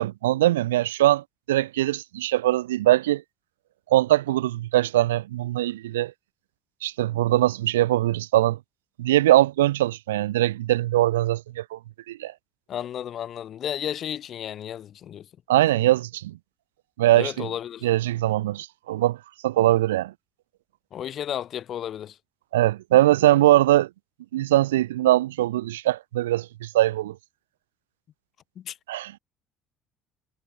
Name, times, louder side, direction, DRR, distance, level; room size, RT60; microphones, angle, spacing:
voice 1, 0.0-3.2 3.9-6.1 6.8-8.6 9.0-11.8 12.1-12.3 15.5-16.3 17.0-17.5 17.8-19.2 19.4-20.1 22.5-23.9 24.3-27.1 28.9-29.2, right 15 dB, 80° right, 0.7 m, -21 dB
voice 2, 12.7-15.3 17.2-17.9 20.9-22.2 28.6-28.8, left 10 dB, 50° left, 4.1 m, -33 dB
hypercardioid pair, 55°, 0 cm